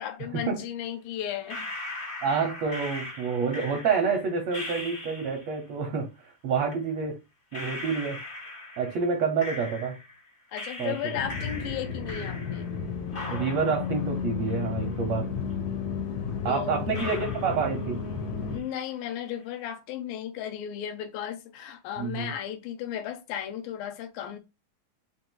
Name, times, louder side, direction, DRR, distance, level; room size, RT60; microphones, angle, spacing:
voice 1, 0.0-1.7 10.5-12.7 16.4-16.8 18.5-24.4, left 10 dB, 90° left, 2.5 m, -35 dB
sound 1, 1.5-5.6 6.7-6.8 7.5-10.2 10.5-12.8 13.1-15.2 15.5-15.6 16.3-16.4 16.9-18.2 18.5-19.1, left 2 dB, 45° left, 0.7 m, -40 dB
voice 2, 2.2-7.2 7.5-8.2 8.8-10.0 10.8-11.2 13.3-15.3 16.4-18.0 22.0-22.3, right 5 dB, 75° right, 1.5 m, -28 dB
sound 2, 11.2-18.6, left 6 dB, 70° left, 1.9 m, -33 dB
5.3 x 2.5 x 3.8 m
omnidirectional pair, 3.9 m